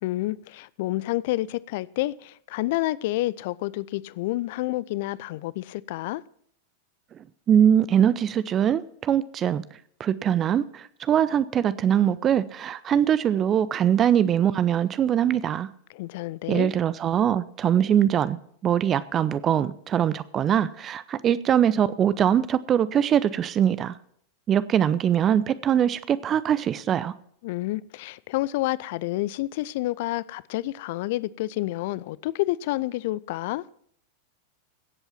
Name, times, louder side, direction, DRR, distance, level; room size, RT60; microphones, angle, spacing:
voice 1, 0.0-6.2 15.9-16.7 27.4-33.7, left 17 dB, 50° left, 0.4 m, -29 dB
voice 2, 7.5-9.6 10.0-15.7 16.5-18.4 18.6-24.0 24.5-27.1, right 9 dB, 25° right, 0.6 m, -22 dB
17.0 x 8.0 x 5.9 m
figure-of-eight pair, 90°, 0 cm